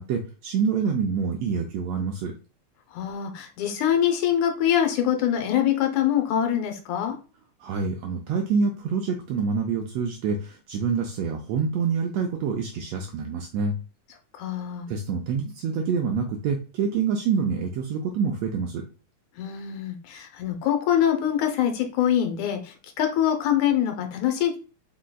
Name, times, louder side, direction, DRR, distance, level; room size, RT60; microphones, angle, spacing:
voice 1, 0.0-2.3 7.6-13.8 14.9-18.8, right 5 dB, 80° right, 2 dB, 1.5 m, -26 dB
voice 2, 2.9-7.2 14.3-14.9 19.4-24.6, left 10 dB, 80° left, 5 dB, 2.1 m, -24 dB
5.0 x 3.7 x 2.2 m, 0.36 s
omnidirectional pair, 3.4 m